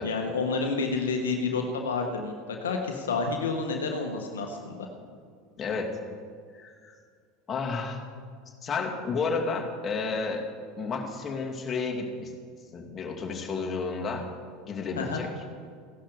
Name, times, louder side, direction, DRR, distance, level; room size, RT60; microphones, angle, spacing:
voice 1, 0.0-4.9 15.0-15.2, left 4 dB, 80° left, 3 dB, 1.3 m, -29 dB
voice 2, 5.6-6.0 6.5-6.9 7.5-8.0 8.6-10.5 10.8-12.3 12.7-14.3 14.6-15.3, left 4 dB, 30° left, 0 dB, 2.4 m, -31 dB
15.5 x 11.5 x 4.9 m, 2.1 s
hypercardioid pair, 80°, 0 cm